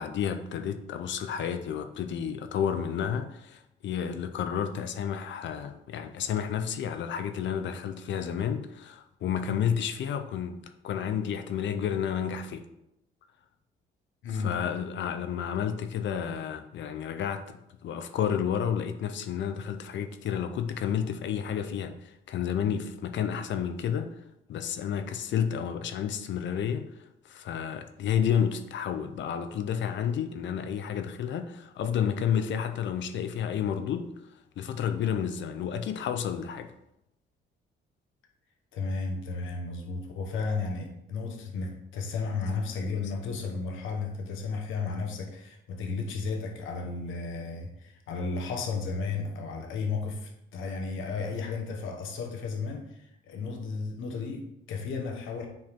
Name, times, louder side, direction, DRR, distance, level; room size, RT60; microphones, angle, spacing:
voice 1, 0.0-12.7 14.3-24.2 24.5-36.7, left 8 dB, 65° left, 0.6 m, -31 dB
voice 2, 14.2-14.6 38.7-55.5, left 4 dB, 85° left, 1.4 m, -33 dB
7.6 x 4.5 x 3.7 m
cardioid pair, 90°, 20 cm